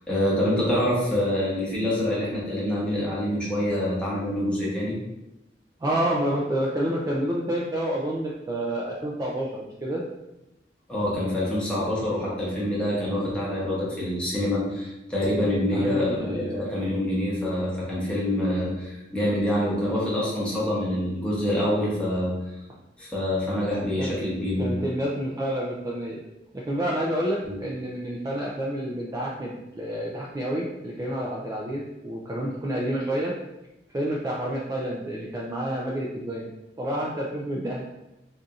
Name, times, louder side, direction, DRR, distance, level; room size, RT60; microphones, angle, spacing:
voice 1, 0.1-4.9 10.9-22.3 23.0-24.7 27.5-27.6, left 1 dB, 5° left, -7 dB, 1.0 m, -26 dB
voice 2, 5.8-10.0 15.7-16.6 24.0-24.2 24.6-26.2 26.5-33.3 33.9-36.5 36.8-37.8, right 1 dB, 20° right, -4 dB, 0.3 m, -29 dB
4.0 x 2.5 x 2.4 m, 0.94 s
head